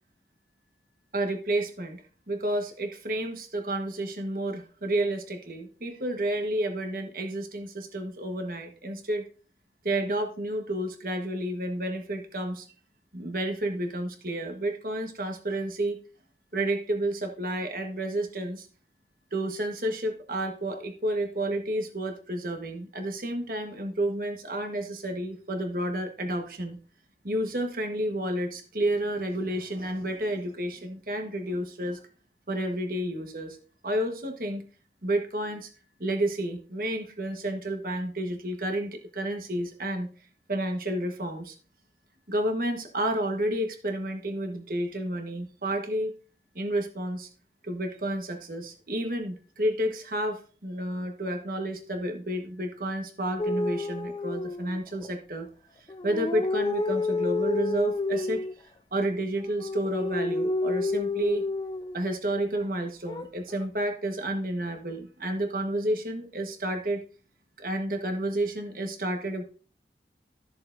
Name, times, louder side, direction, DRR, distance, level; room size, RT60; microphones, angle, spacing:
voice 1, 1.1-9.2 9.8-12.7 13.1-16.0 16.5-18.7 19.3-26.8 27.2-32.0 32.5-33.6 33.8-34.6 35.0-35.7 36.0-40.1 40.5-41.5 42.3-46.1 46.5-47.3 47.6-55.5 56.0-61.4 61.9-67.0 67.6-69.4, right 1 dB, 50° right, 5 dB, 1.3 m, -30 dB
sound 1, 53.4-55.1 55.9-58.5 59.4-62.0 63.1-63.7, left 3 dB, 25° left, 0.3 m, -30 dB
13.5 x 6.7 x 2.6 m, 0.38 s
head